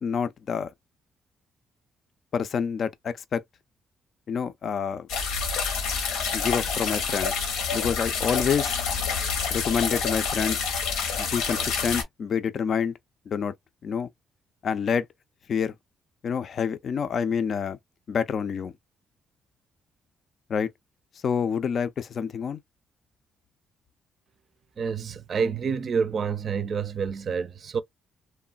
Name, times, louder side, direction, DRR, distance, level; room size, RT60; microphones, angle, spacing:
voice 1, 0.0-0.7 2.3-3.4 4.3-5.1 6.3-7.3 7.7-8.8 9.5-10.6 11.2-12.9 13.3-13.5 13.8-14.1 14.6-15.1 15.5-15.7 16.2-17.8 18.1-18.7 20.5-20.7 21.2-22.6, left 6 dB, 55° left, 0.4 m, -27 dB
sound 1, 5.1-12.0, left 5 dB, 90° left, 0.8 m, -28 dB
voice 2, 24.8-27.8, right 6 dB, 50° right, 0.4 m, -28 dB
3.1 x 2.0 x 2.3 m
cardioid pair, 75°, 0 cm